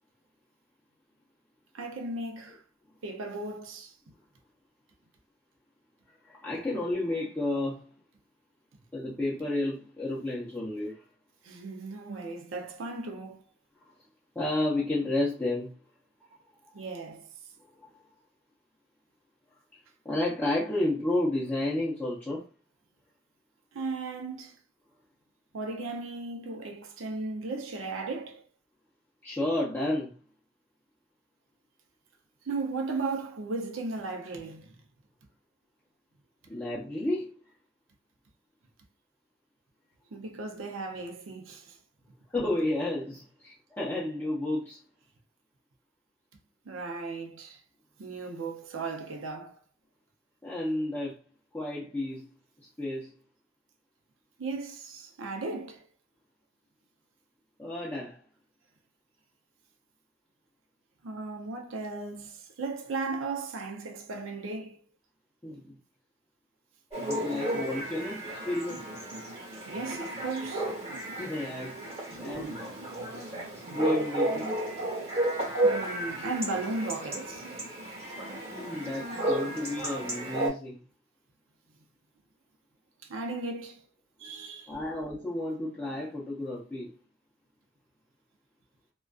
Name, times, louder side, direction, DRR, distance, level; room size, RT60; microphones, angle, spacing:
voice 1, 1.7-2.6 3.0-3.9 11.4-13.4 16.7-17.3 23.7-24.5 25.5-28.4 32.4-34.8 40.1-41.8 46.7-47.6 48.0-49.6 54.4-55.9 61.0-64.8 69.6-70.7 72.1-72.4 75.6-77.5 83.0-83.8 84.2-84.8, right 3 dB, 70° right, 0.5 m, -36 dB
voice 2, 6.3-7.9 8.9-11.0 13.8-13.9 14.3-15.7 16.7-16.8 17.8-17.9 20.0-22.4 29.2-30.1 36.5-37.3 42.3-44.8 50.4-51.2 51.5-52.3 52.8-53.1 57.6-58.2 65.4-65.8 67.0-68.8 71.2-71.8 72.2-72.6 73.7-74.5 78.5-80.8 84.7-86.9, left 1 dB, 10° left, 0.6 m, -31 dB
Chatter / Bark / Livestock farm animals working animals, 66.9-80.5, right 1 dB, 30° right, 1.1 m, -33 dB
2.4 x 2.2 x 2.3 m
head